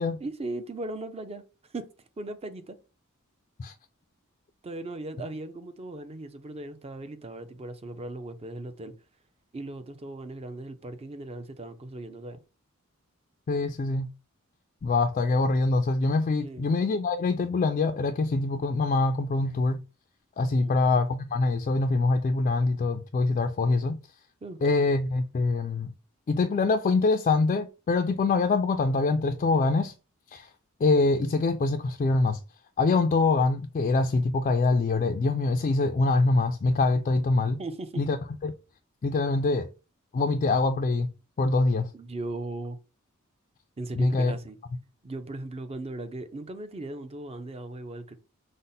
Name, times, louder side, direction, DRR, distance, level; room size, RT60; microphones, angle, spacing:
voice 1, 0.2-1.5 1.7-1.9 2.2-2.8 4.6-8.9 9.5-12.4 16.4-16.7 20.6-20.8 24.4-24.8 37.6-38.0 41.9-42.8 43.8-44.6 45.0-48.2, right 2 dB, 30° right, 0.5 m, -38 dB
voice 2, 13.5-14.1 14.8-19.8 20.4-24.0 24.6-25.9 26.3-29.9 30.3-30.5 30.8-32.4 32.8-37.6 38.0-38.2 38.4-38.5 39.0-39.7 40.1-41.1 41.4-41.9 44.0-44.3, left 3 dB, 35° left, 0.3 m, -24 dB
5.2 x 2.1 x 4.0 m
head